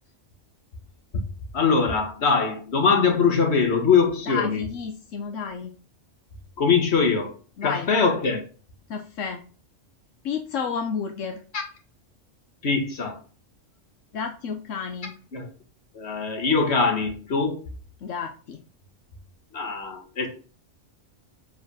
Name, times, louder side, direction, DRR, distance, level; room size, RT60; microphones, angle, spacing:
voice 1, 1.5-4.6 6.6-7.3 7.6-8.4 11.5-11.6 12.6-13.2 15.3-15.5 15.9-17.6 19.5-20.3, left 5 dB, 60° left, 1.7 m, -22 dB
voice 2, 4.3-5.7 7.6-7.9 8.9-9.4 10.2-11.4 14.1-15.1 18.0-18.6, left 6 dB, 80° left, 1.1 m, -31 dB
7.8 x 4.2 x 5.4 m
omnidirectional pair, 1.3 m